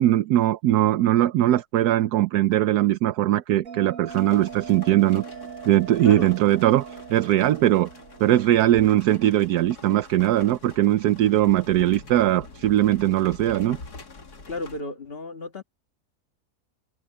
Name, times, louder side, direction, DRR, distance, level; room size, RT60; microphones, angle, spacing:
voice 1, 0.0-5.2 5.7-7.9 8.2-13.8, right 13 dB, 80° right, 1.2 m, -20 dB
Bell, 3.6-8.7, right 6 dB, 60° right, 1.8 m, -40 dB
sound 1, 4.1-14.8, left 3 dB, 80° left, 3.1 m, -45 dB
voice 2, 14.5-15.6, left 2 dB, 35° left, 1.8 m, -33 dB
open air
omnidirectional pair, 1.7 m